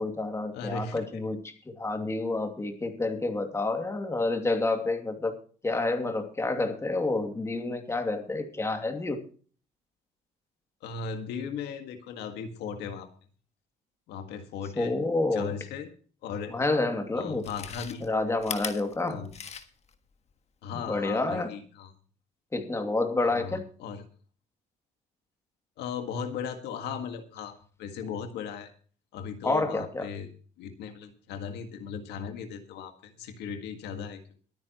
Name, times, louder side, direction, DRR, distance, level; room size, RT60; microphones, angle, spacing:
voice 1, 0.0-1.4 1.7-5.4 5.6-9.2 14.8-15.5 16.5-17.4 18.0-19.3 20.7-21.5 22.5-23.6 29.4-30.1, left 2 dB, 15° left, 5 dB, 2.5 m, -29 dB
voice 2, 0.5-1.2 10.8-13.1 14.1-14.9 15.3-15.9 16.2-16.5 17.2-18.1 19.0-19.3 20.6-21.9 23.2-24.1 25.8-28.7 29.1-30.3 30.6-34.4, left 6 dB, 80° left, 6 dB, 1.8 m, -37 dB
Chewing mastication, 16.5-16.6 17.3-19.9 20.3-20.4, left 6 dB, 40° left, 1.5 m, -39 dB
23.0 x 9.6 x 3.0 m, 0.43 s
cardioid pair, 110°, 17 cm